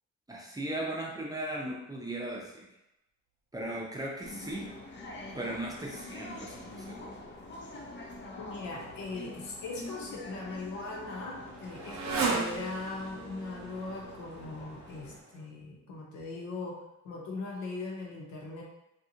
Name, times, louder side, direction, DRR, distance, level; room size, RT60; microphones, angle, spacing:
voice 1, 0.3-2.6 3.5-4.7 5.3-7.2, right 1 dB, 10° right, -4 dB, 0.6 m, -37 dB
sound 1, 4.2-15.2, left 2 dB, 40° left, 0.5 m, -46 dB
voice 2, 8.4-16.8 17.0-18.6, left 3 dB, 75° left, -2 dB, 0.8 m, -40 dB
Motorcycle, 10.1-15.5, right 4 dB, 65° right, 0.6 m, -37 dB
2.7 x 2.4 x 2.7 m, 0.92 s
cardioid pair, 90°, 30 cm